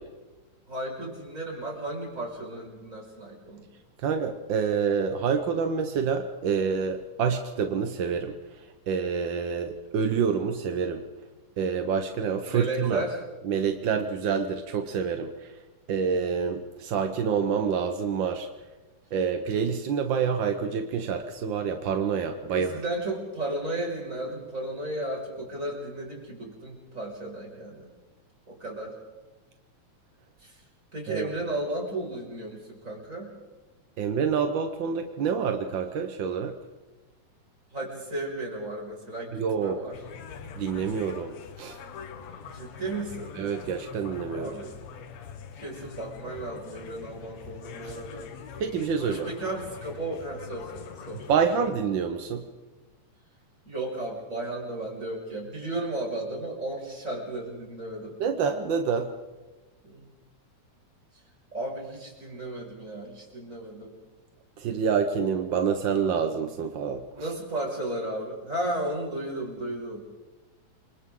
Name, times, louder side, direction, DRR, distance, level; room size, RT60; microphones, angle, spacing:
voice 1, 0.7-3.7 12.4-13.2 22.5-27.9 28.5-29.0 30.4-30.6 30.9-33.3 37.7-40.0 42.4-43.4 44.3-44.8 45.6-48.3 49.0-51.3 51.5-51.6 53.6-58.2 59.8-60.1 61.5-64.0 66.8-70.0, right 1 dB, 25° right, -2 dB, 6.0 m, -34 dB
voice 2, 4.0-11.0 11.6-13.0 13.4-15.6 15.9-18.5 19.1-22.8 31.1-31.3 34.0-36.6 39.3-39.8 40.5-41.8 43.4-44.5 47.8-47.9 48.6-49.3 51.3-52.5 58.2-59.1 64.6-67.3, right 6 dB, 60° right, 6 dB, 1.3 m, -27 dB
sound 1, 39.9-51.7, left 7 dB, 70° left, 2.4 m, -43 dB
28.5 x 25.0 x 3.8 m, 1.2 s
omnidirectional pair, 3.3 m